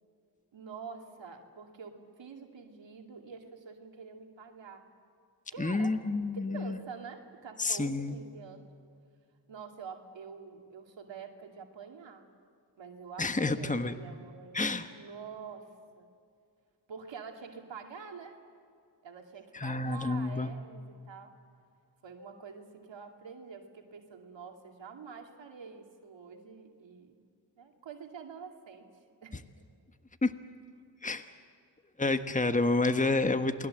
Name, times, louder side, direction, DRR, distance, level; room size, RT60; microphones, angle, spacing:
voice 1, 0.5-4.9 5.5-5.9 6.3-8.7 9.5-12.3 12.8-14.6 14.9-15.7 15.9-16.1 16.9-18.4 19.0-21.3 22.0-27.2 27.6-28.8 29.2-29.4, right 5 dB, 85° right, 3 dB, 2.4 m, -46 dB
voice 2, 5.6-6.8 7.6-8.1 13.2-14.0 14.5-14.9 19.5-20.5 30.2-30.3 31.0-31.2 32.0-33.7, left 3 dB, 15° left, 9 dB, 1.3 m, -29 dB
28.0 x 21.0 x 7.8 m, 2.3 s
cardioid pair, 40°, 44 cm